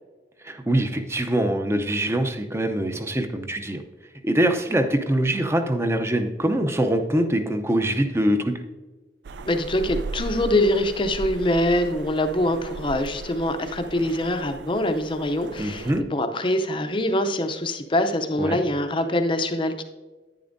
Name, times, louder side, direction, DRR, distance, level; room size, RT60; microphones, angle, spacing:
voice 1, 0.5-3.8 4.2-8.5 15.6-16.0 18.4-18.6, right 1 dB, 15° right, 7 dB, 0.6 m, -23 dB
sound 1, 9.2-16.0, right 3 dB, 75° right, 0.4 m, -37 dB
voice 2, 9.4-19.8, left 1 dB, 30° left, 7 dB, 0.6 m, -24 dB
10.5 x 9.5 x 2.6 m, 1.3 s
head